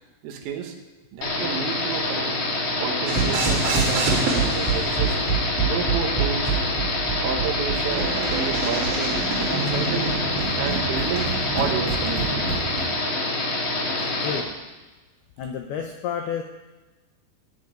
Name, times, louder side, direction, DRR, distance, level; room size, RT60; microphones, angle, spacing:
voice 1, 0.2-0.8 1.1-2.4 2.8-5.2 5.6-6.6 7.2-10.2 10.6-12.5, right 7 dB, 90° right, 4 dB, 4.0 m, -31 dB
sound 1, 1.2-14.4, left 2 dB, 50° left, 1.6 m, -26 dB
sound 2, 3.1-12.9, right 4 dB, 65° right, 4.9 m, -26 dB
voice 2, 15.4-16.4, left 7 dB, 85° left, 4 dB, 2.2 m, -30 dB
15.5 x 6.7 x 9.7 m, 1.2 s
omnidirectional pair, 5.7 m